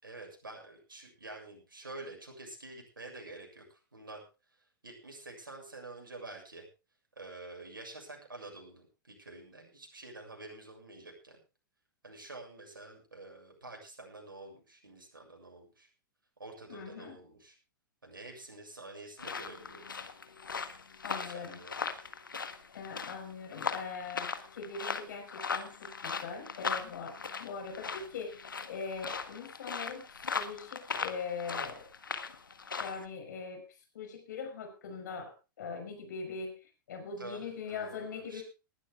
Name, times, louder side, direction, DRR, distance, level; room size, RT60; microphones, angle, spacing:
voice 1, 0.0-4.2 4.6-6.7 7.2-11.4 12.0-15.9 16.4-17.6 18.0-20.1 21.0-22.0 37.2-38.4, right 2 dB, 75° right, 2 dB, 7.1 m, -48 dB
voice 2, 16.7-17.2 21.0-21.6 22.7-31.9 32.8-33.6 33.9-35.3 35.6-38.4, left 5 dB, 60° left, 5 dB, 5.4 m, -41 dB
sound 1, 19.2-33.1, left 5 dB, 75° left, 1.5 m, -39 dB
19.5 x 12.5 x 3.7 m, 0.31 s
figure-of-eight pair, 100°, 11 cm